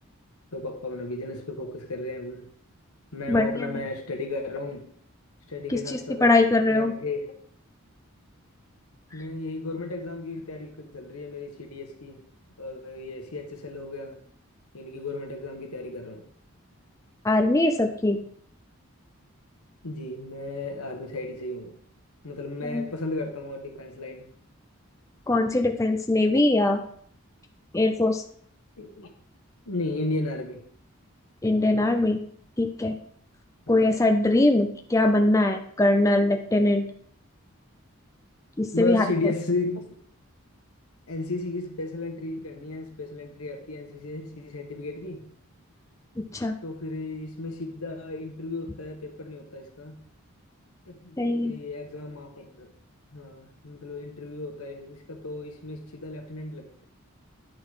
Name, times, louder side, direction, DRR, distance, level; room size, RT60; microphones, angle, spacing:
voice 1, 0.5-2.5 3.1-4.9 5.5-7.3 9.1-12.2 12.6-14.2 14.7-16.2 19.8-21.7 22.2-24.3 28.8-29.1 29.6-30.6 33.7-34.0 38.7-39.9 41.1-45.2 46.6-50.0 50.9-52.7 53.1-56.8, left 2 dB, 90° left, 4 dB, 1.3 m, -34 dB
voice 2, 3.3-3.7 5.7-5.8 6.2-6.9 17.2-18.2 22.6-22.8 25.3-26.8 27.7-28.2 31.4-32.2 32.6-32.9 33.7-36.8 38.6-39.1 46.2-46.5 51.2-51.5, left 2 dB, 15° left, 4 dB, 0.4 m, -22 dB
10.0 x 3.8 x 4.8 m, 0.62 s
head